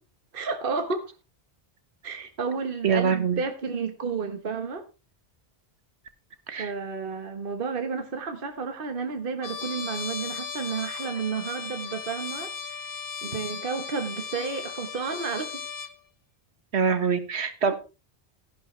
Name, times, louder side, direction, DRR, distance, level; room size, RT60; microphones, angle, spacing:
voice 1, 0.3-1.1 2.0-4.8 6.6-12.9 13.2-15.6 17.7-17.8, right 5 dB, 55° right, 1.4 m, -31 dB
voice 2, 2.8-3.4 6.5-6.7 16.7-17.8, right 6 dB, 75° right, 1.7 m, -24 dB
Trumpet, 9.4-16.0, left 6 dB, 60° left, 1.1 m, -36 dB
14.0 x 11.0 x 3.3 m
omnidirectional pair, 1.1 m